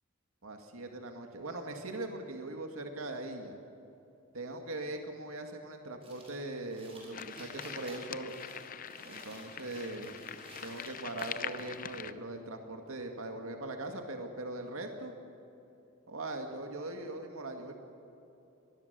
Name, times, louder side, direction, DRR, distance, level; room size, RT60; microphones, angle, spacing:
voice 1, 0.4-3.6 4.3-8.3 9.0-10.1 10.6-15.1 16.1-17.8, right 2 dB, 80° right, 4 dB, 2.1 m, -40 dB
sound 1, 6.0-11.8, right 1 dB, 30° right, 6.0 m, -54 dB
sound 2, 7.1-12.1, left 8 dB, 40° left, 0.6 m, -43 dB
24.5 x 19.5 x 6.9 m, 2.9 s
head